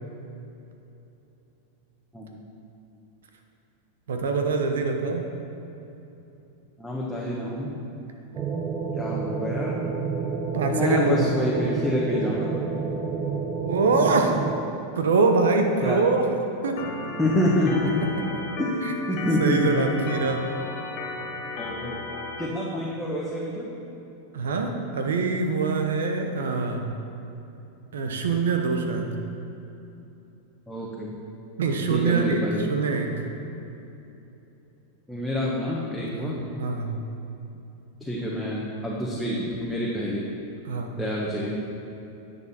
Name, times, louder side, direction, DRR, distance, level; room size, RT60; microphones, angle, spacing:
voice 1, 4.1-5.3 10.5-11.3 13.6-14.3 14.9-16.2 16.6-16.7 18.8-18.9 19.4-20.4 24.3-26.8 27.9-29.1 31.6-32.4 32.7-33.1 36.1-36.9 40.7-40.9, right 4 dB, 85° right, 4 dB, 1.1 m, -24 dB
voice 2, 6.8-7.8 8.9-9.9 10.7-12.6 15.8-16.0 17.2-18.0 18.6-19.9 21.6-22.0 22.4-23.7 30.7-31.1 31.9-32.7 35.1-36.4 38.0-40.2 41.0-41.6, left 1 dB, ahead, -6 dB, 1.3 m, -27 dB
sound 1, 8.3-14.6, right 5 dB, 30° right, 1.0 m, -29 dB
Organ, 16.8-22.5, left 3 dB, 60° left, 1.7 m, -35 dB
10.5 x 7.1 x 4.4 m, 3.0 s
hypercardioid pair, 115°, 0 cm